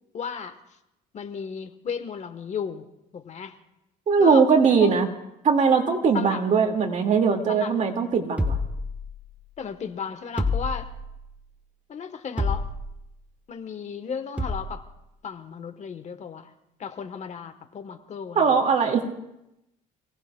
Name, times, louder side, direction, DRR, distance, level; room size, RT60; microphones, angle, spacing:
voice 1, 0.1-0.6 1.1-2.9 3.1-3.6 4.2-4.5 4.8-4.9 6.1-6.4 7.5-7.7 9.6-10.9 11.9-12.6 13.5-14.8 15.2-16.5 16.8-18.7, left 6 dB, 45° left, 9 dB, 1.1 m, -34 dB
voice 2, 4.1-5.1 5.4-8.6 18.4-19.0, right 5 dB, 45° right, 4 dB, 2.0 m, -20 dB
sound 1, 8.4-9.5 10.4-11.3 12.4-13.1 14.4-14.9, left 2 dB, 10° right, 1.2 m, -28 dB
28.0 x 18.0 x 2.2 m, 0.88 s
cardioid pair, 110°, 17 cm